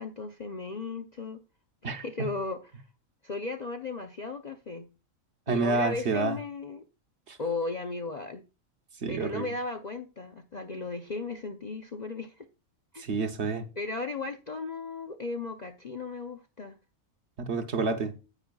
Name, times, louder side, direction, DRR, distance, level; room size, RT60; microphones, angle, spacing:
voice 1, 0.0-1.4 1.8-2.8 3.2-4.9 5.5-6.9 7.4-8.4 9.1-12.5 12.9-13.0 13.8-16.8, left 3 dB, 45° left, 0.6 m, -36 dB
voice 2, 1.8-2.3 5.5-6.3 7.3-7.4 9.0-9.5 13.0-13.7 17.4-18.1, right 4 dB, 55° right, 1.1 m, -29 dB
9.9 x 9.0 x 2.3 m
omnidirectional pair, 1.4 m